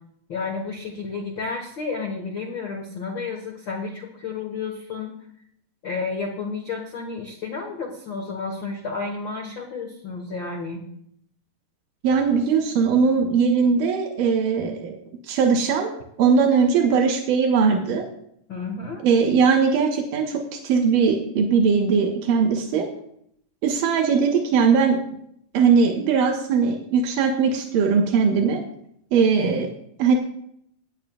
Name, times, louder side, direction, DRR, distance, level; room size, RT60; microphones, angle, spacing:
voice 1, 0.3-5.1 5.8-10.8 18.5-19.0, left 4 dB, 55° left, 0 dB, 1.4 m, -31 dB
voice 2, 12.0-15.0 15.3-15.9 16.2-18.0 19.0-22.9 23.6-25.0 25.5-28.6 29.1-29.7 30.0-30.2, right 5 dB, 90° right, 1 dB, 3.1 m, -20 dB
18.0 x 9.7 x 2.3 m, 0.69 s
omnidirectional pair, 3.9 m